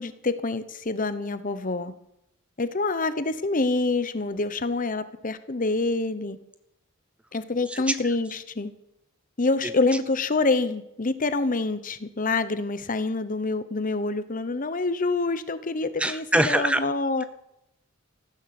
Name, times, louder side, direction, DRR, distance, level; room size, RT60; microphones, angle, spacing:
voice 1, 0.0-1.9 2.6-6.4 7.3-8.7 9.4-17.2, left 3 dB, 40° left, 13 dB, 0.9 m, -26 dB
voice 2, 16.0-16.8, right 1 dB, 5° right, 11 dB, 0.5 m, -22 dB
15.0 x 13.0 x 6.0 m, 0.83 s
head